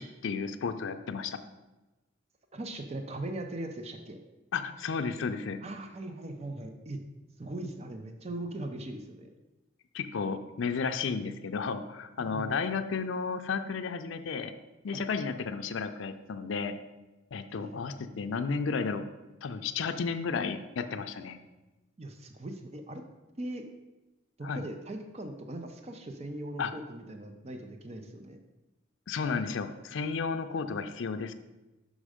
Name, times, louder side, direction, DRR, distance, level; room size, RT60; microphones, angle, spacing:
voice 1, 0.0-1.4 4.5-5.6 9.9-14.5 14.8-16.7 17.3-19.0 19.4-21.4 24.4-24.6 26.6-26.7 29.1-31.3, left 5 dB, 70° left, 7 dB, 0.5 m, -33 dB
voice 2, 2.5-4.2 5.6-7.0 7.4-9.3 12.2-12.6 14.9-15.0 17.5-17.8 22.0-23.0 23.3-23.7 24.4-28.4, right 1 dB, 35° right, 5 dB, 0.6 m, -40 dB
6.3 x 5.1 x 4.9 m, 1.1 s
head